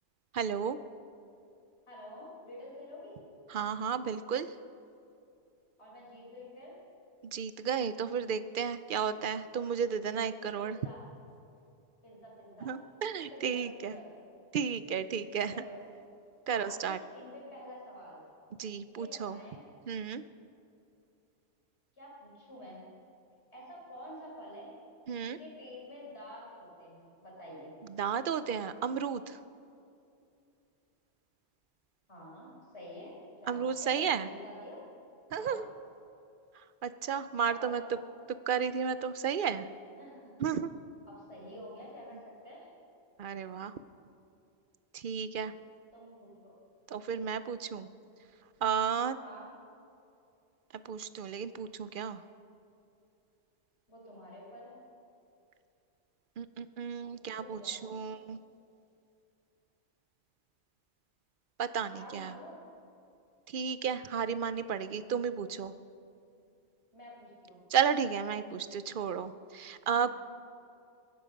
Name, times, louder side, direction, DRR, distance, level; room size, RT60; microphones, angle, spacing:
voice 1, 0.3-0.8 3.5-4.5 7.3-10.8 12.6-14.0 14.5-15.5 16.5-17.0 18.6-19.4 19.9-20.2 25.1-25.4 27.9-29.4 33.5-34.3 35.3-35.7 36.8-37.8 38.5-39.7 40.4-40.7 43.2-43.7 44.9-45.5 46.9-47.9 48.6-49.2 50.8-52.2 56.4-58.4 61.6-62.4 63.5-65.7 67.7-70.1, right 7 dB, 55° right, 13 dB, 0.6 m, -33 dB
voice 2, 1.9-3.2 5.8-6.8 10.6-11.0 12.0-12.7 13.2-14.3 15.5-15.8 16.5-18.2 18.9-19.6 21.9-22.8 23.5-24.7 25.1-27.7 32.1-34.8 35.3-35.7 37.4-38.0 40.0-40.3 41.1-42.7 45.9-46.5 49.2-49.5 53.9-54.8 57.1-57.9 61.9-62.6 66.9-67.6 69.9-70.1, equal, 70° left, -4 dB, 4.7 m, -49 dB
23.0 x 10.5 x 5.3 m, 2.6 s
omnidirectional pair, 1.2 m